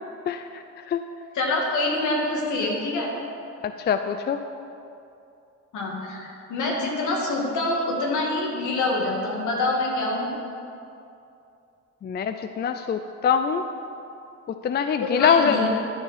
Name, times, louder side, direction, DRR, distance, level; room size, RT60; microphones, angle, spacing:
voice 1, 0.3-1.0 3.6-4.4 12.0-13.6 14.5-15.7, left 7 dB, 35° left, 9 dB, 0.4 m, -24 dB
voice 2, 1.3-3.1 5.7-10.3 15.0-15.7, left 2 dB, 75° left, -1 dB, 2.0 m, -26 dB
12.0 x 4.9 x 5.7 m, 2.7 s
cardioid pair, 90°, 30 cm